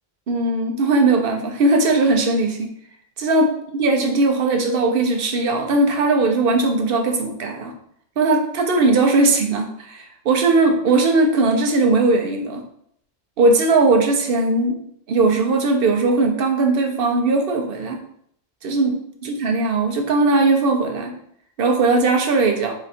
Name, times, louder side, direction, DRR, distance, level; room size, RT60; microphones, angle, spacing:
voice 1, 0.3-2.7 3.2-7.7 8.2-12.6 13.4-14.8 15.1-18.0 18.6-19.0 19.2-21.1 21.6-22.7, right 3 dB, 55° right, 3 dB, 0.8 m, -19 dB
4.3 x 2.4 x 4.1 m, 0.68 s
omnidirectional pair, 1.3 m